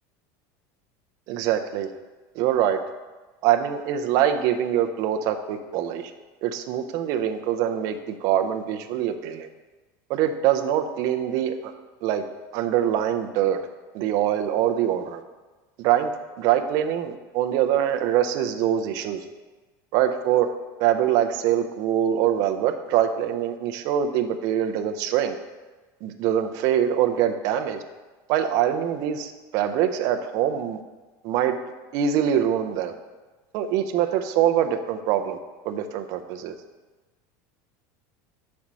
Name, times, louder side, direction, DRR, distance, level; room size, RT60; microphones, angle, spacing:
voice 1, 1.3-1.9 2.4-2.8 3.4-6.1 6.4-9.5 10.1-11.7 12.0-12.2 12.5-13.6 13.9-15.2 15.8-16.1 16.4-19.2 19.9-20.5 20.8-25.4 26.0-27.8 28.3-30.8 31.2-31.6 31.9-32.9 33.5-35.4 35.6-36.5, right 10 dB, 40° right, 6 dB, 0.4 m, -24 dB
5.1 x 4.2 x 5.9 m, 1.2 s
cardioid pair, 180°, 9 cm